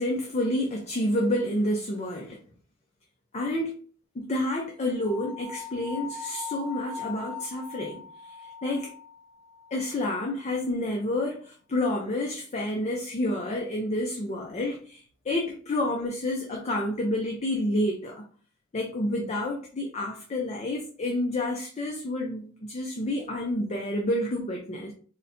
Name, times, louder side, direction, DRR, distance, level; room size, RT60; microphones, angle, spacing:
voice 1, 0.0-2.4 3.3-3.7 4.1-8.9 9.7-18.2 18.7-24.9, left 1 dB, 30° left, 0.4 m, -29 dB
sound 1, 5.0-10.1, left 4 dB, 80° right, 0.5 m, -41 dB
4.0 x 2.1 x 2.7 m
head